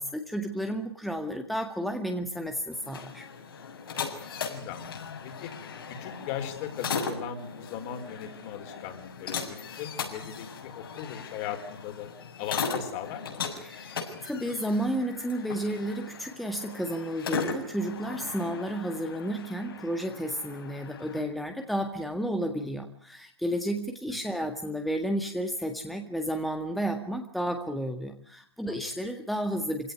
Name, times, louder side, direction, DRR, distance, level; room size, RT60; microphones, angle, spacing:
voice 1, 0.0-3.2 13.6-29.9, equal, ahead, 4 dB, 1.8 m, -32 dB
sound 1, 2.7-21.2, left 5 dB, 60° left, 6.8 m, -38 dB
voice 2, 3.9-5.5 5.9-12.1 12.4-13.5 24.1-24.2 28.7-28.9, left 9 dB, 35° left, 6 dB, 4.8 m, -39 dB
26.5 x 17.5 x 9.5 m, 0.62 s
figure-of-eight pair, 120°, 13 cm